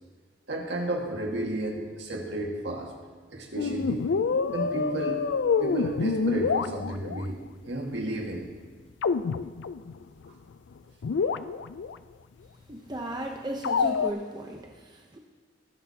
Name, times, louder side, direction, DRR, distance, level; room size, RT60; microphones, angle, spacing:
voice 1, 0.5-2.9 3.3-4.1 4.5-5.3 5.6-7.4 7.7-8.5, right 1 dB, 75° right, 0 dB, 1.8 m, -32 dB
sound 1, 3.6-7.2 9.0-10.0 10.3-10.4 10.7-10.8 11.0-12.0 13.6-14.1, left 5 dB, 90° left, 0.4 m, -27 dB
voice 2, 12.7-15.2, right 1 dB, 25° right, 2 dB, 0.7 m, -36 dB
18.5 x 10.5 x 2.9 m, 1.5 s
head